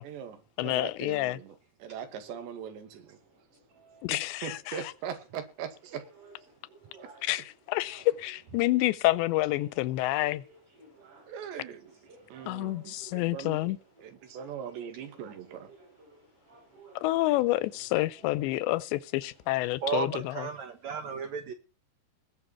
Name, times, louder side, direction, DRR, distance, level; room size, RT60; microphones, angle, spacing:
voice 1, 0.0-3.2 4.1-6.1 11.1-11.9 12.3-15.7, right 8 dB, 85° right, 4.3 m, -41 dB
voice 2, 0.6-1.4 4.0-4.6 7.2-10.4 12.5-13.8 17.0-20.5, left 18 dB, 90° left, 3.0 m, -28 dB
sound 1, 2.1-20.1, right 2 dB, 30° right, 6.2 m, -58 dB
voice 3, 19.8-21.5, right 6 dB, 70° right, 1.7 m, -33 dB
20.5 x 7.1 x 4.4 m
omnidirectional pair, 4.9 m